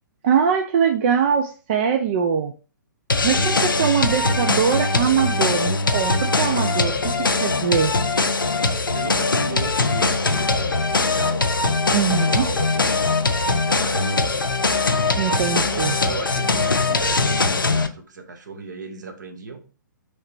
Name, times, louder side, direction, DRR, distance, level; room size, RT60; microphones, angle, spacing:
voice 1, 0.2-2.5 3.2-7.9 11.9-12.4 15.2-16.0, right 7 dB, 35° right, 5 dB, 0.3 m, -22 dB
sound 1, 3.1-17.9, left 3 dB, 80° left, 0.5 m, -21 dB
voice 2, 3.3-4.2 8.7-13.0 13.4-14.4 15.2-19.6, right 4 dB, 60° right, 5 dB, 0.9 m, -36 dB
3.2 x 2.7 x 4.5 m, 0.36 s
figure-of-eight pair, 125°, 11 cm